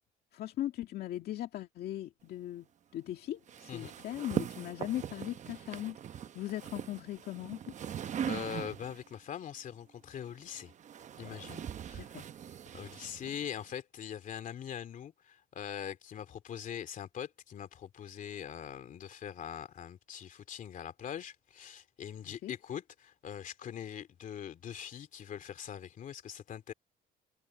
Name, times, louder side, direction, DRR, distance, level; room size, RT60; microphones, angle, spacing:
voice 1, 0.3-2.7 2.9-6.0 6.3-7.6 11.9-12.3 22.2-22.5, left 13 dB, 70° left, 2.2 m, -39 dB
sound 1, 3.5-9.1 10.2-13.7, right 9 dB, 45° right, 1.0 m, -41 dB
voice 2, 8.2-10.7 11.2-12.1 12.7-26.7, left 9 dB, 50° left, 2.8 m, -42 dB
cardioid pair, 110°, 17 cm